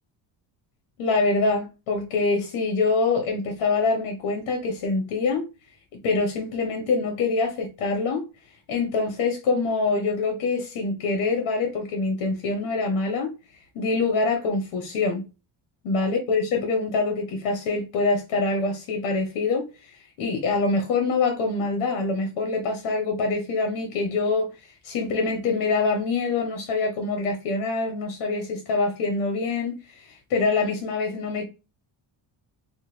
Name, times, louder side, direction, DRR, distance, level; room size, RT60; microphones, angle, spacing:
voice 1, 1.0-5.4 5.9-8.2 8.7-13.3 13.7-15.3 15.8-19.7 20.2-24.5 24.8-31.5, left 3 dB, 80° left, 1.1 m, -25 dB
4.1 x 2.3 x 3.1 m
cardioid pair, 80°, 50 cm